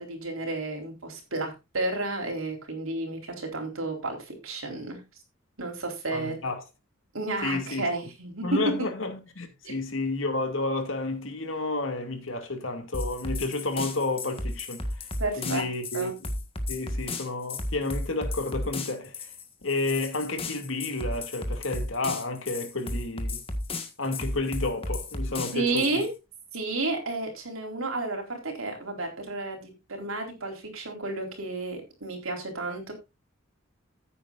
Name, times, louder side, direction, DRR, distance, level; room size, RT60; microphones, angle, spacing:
voice 1, 0.0-5.0 5.6-6.3 7.1-8.6 9.6-9.8 15.2-15.6 15.9-16.1 25.5-26.1 26.5-32.9, right 2 dB, 85° right, 4.1 m, -31 dB
voice 2, 6.1-6.6 7.4-7.9 8.4-15.1 15.4-16.3 16.7-19.3 19.6-23.4 24.0-26.1, left 2 dB, 70° left, 2.5 m, -31 dB
sound 1, 12.9-26.1, left 2 dB, 30° left, 1.6 m, -34 dB
14.5 x 8.9 x 2.5 m
head